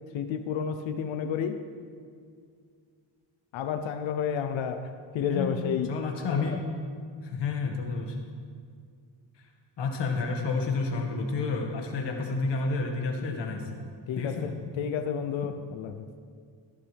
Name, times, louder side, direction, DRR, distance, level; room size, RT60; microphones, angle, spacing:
voice 1, 0.1-1.6 3.5-5.9 6.3-6.6 14.1-16.1, left 7 dB, 85° left, 8 dB, 0.9 m, -31 dB
voice 2, 5.9-6.6 7.2-8.2 9.8-13.6 14.2-14.5, left 4 dB, 65° left, 2 dB, 2.0 m, -30 dB
15.5 x 12.0 x 3.5 m, 2.2 s
cardioid pair, 115°, 46 cm